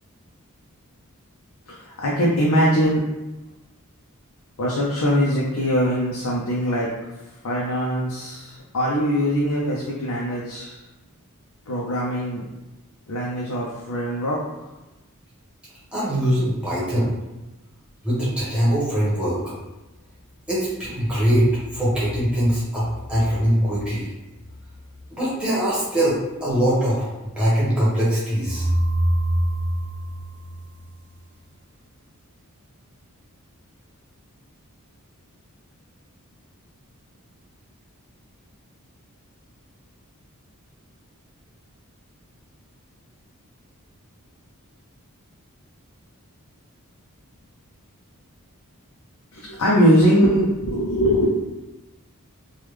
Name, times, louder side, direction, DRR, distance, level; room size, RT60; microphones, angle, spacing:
voice 1, 1.7-3.0 4.6-6.9 7.4-10.8 11.7-12.4 13.1-14.4 49.3-51.3, equal, 80° left, -5 dB, 0.6 m, -21 dB
voice 2, 15.9-17.1 18.0-19.5 20.5-24.1 25.1-28.7, equal, 5° right, -8 dB, 1.1 m, -22 dB
sound 1, 28.4-31.3, right 1 dB, 50° right, 0.5 m, -24 dB
3.4 x 2.3 x 3.1 m, 1.1 s
head